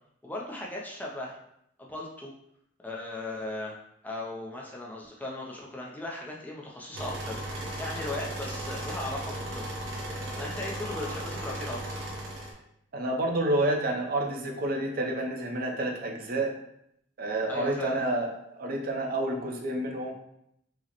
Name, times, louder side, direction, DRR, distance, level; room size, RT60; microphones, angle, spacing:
voice 1, 0.2-1.4 1.8-2.3 2.8-3.8 4.0-9.7 10.4-12.0 17.5-18.0, left 2 dB, 10° left, -2 dB, 0.4 m, -37 dB
sound 1, 6.9-12.5, right 1 dB, 75° right, 0.8 m, -36 dB
voice 2, 12.9-16.5 17.2-20.1, right 1 dB, 50° right, 2 dB, 0.5 m, -29 dB
4.7 x 2.1 x 2.9 m, 0.75 s
head